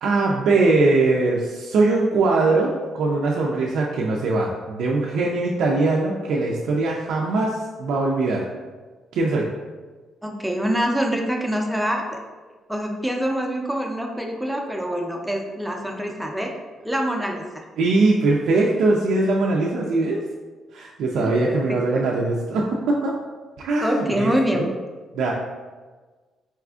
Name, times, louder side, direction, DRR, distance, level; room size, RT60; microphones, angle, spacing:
voice 1, 0.0-8.4 9.1-9.5 17.8-20.2 20.7-23.1 23.6-24.7 25.1-25.3, right 3 dB, 80° right, -3 dB, 0.3 m, -21 dB
voice 2, 10.2-12.2 12.7-16.5 16.8-17.6 21.2-21.6 23.8-24.7, equal, 5° right, 1 dB, 0.5 m, -25 dB
4.1 x 2.4 x 2.3 m, 1.4 s
cardioid pair, 90°, 0 cm